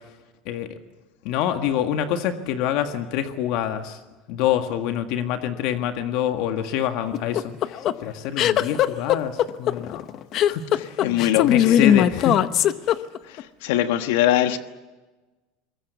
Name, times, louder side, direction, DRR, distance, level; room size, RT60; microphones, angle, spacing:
voice 1, 1.2-4.0 4.3-10.0 10.4-12.4, left 10 dB, 60° left, 1.7 m, -26 dB
sound 1, 7.1-13.4, left 11 dB, 45° left, 0.9 m, -19 dB
voice 2, 10.7-12.1 13.3-14.6, left 12 dB, 80° left, 1.3 m, -23 dB
23.5 x 21.0 x 8.2 m
supercardioid pair, 140°, 0 cm